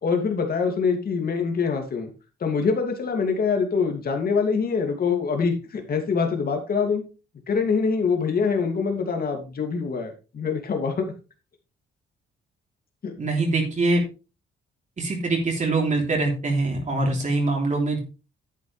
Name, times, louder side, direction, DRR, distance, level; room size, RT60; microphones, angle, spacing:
voice 1, 0.0-2.1 2.4-7.0 7.5-11.1 13.0-13.1, left 5 dB, 50° left, 4 dB, 2.6 m, -24 dB
voice 2, 13.2-14.0 15.0-18.0, right 2 dB, 40° right, 0 dB, 3.3 m, -23 dB
10.5 x 8.5 x 3.4 m, 0.31 s
cardioid pair, 90°, 20 cm